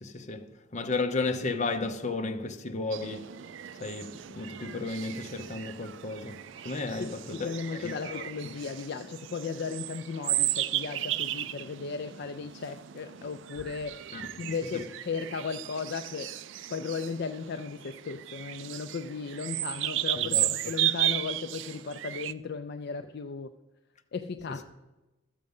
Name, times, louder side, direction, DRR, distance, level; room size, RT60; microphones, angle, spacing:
voice 1, 0.0-0.5 0.7-3.3 3.8-6.4 6.6-8.3 14.1-14.5 14.7-14.8 20.2-20.5 24.5-24.6, left 3 dB, 40° left, 0.8 m, -34 dB
sound 1, 2.9-22.3, right 13 dB, 70° right, 0.4 m, -34 dB
voice 2, 7.0-14.0 14.4-16.4 16.7-23.5 24.1-24.6, left 5 dB, 55° left, 0.4 m, -36 dB
13.0 x 7.5 x 5.4 m
head